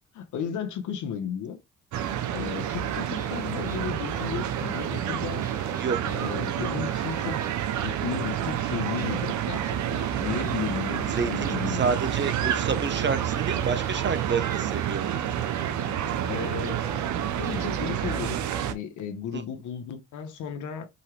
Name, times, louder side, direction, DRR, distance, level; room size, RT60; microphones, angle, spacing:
voice 1, 0.1-1.6 2.3-5.5 6.0-7.4 7.8-11.8 16.3-16.8 17.4-18.4 18.7-20.9, left 7 dB, 80° left, 1.2 m, -34 dB
sound 1, 1.9-18.7, right 10 dB, 70° right, 0.8 m, -29 dB
sound 2, 3.2-3.8 4.1-5.1 5.4-7.5 7.8-10.6 10.9-15.9 16.3-18.6, right 1 dB, 10° right, 1.1 m, -45 dB
voice 2, 11.1-15.1 19.3-19.4, right 5 dB, 35° right, 0.9 m, -29 dB
5.4 x 2.9 x 3.3 m
cardioid pair, 90°, 30 cm